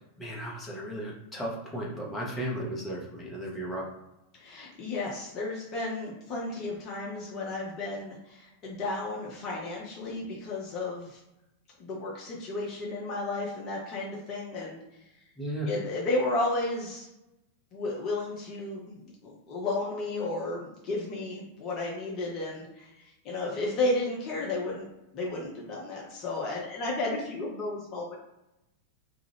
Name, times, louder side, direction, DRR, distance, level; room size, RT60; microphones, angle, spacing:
voice 1, 0.2-3.9 15.4-15.7, right 1 dB, 10° left, -4 dB, 0.9 m, -35 dB
voice 2, 4.3-11.2 11.8-14.8 15.7-17.1 17.7-24.9 25.1-28.2, left 2 dB, 35° left, -3 dB, 0.6 m, -33 dB
2.4 x 2.3 x 3.3 m, 0.92 s
figure-of-eight pair, 90°, 0 cm